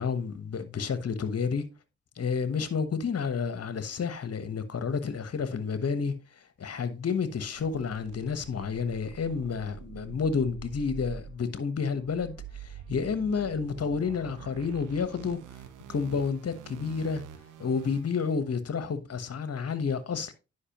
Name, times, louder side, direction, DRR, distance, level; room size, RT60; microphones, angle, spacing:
voice 1, 0.0-1.6 2.2-6.1 6.6-15.4 15.9-17.2 17.6-20.3, left 5 dB, 50° left, 1.2 m, -30 dB
sound 1, 7.6-18.4, right 8 dB, 90° right, 0.8 m, -46 dB
9.8 x 5.3 x 3.0 m
supercardioid pair, 45°, 30 cm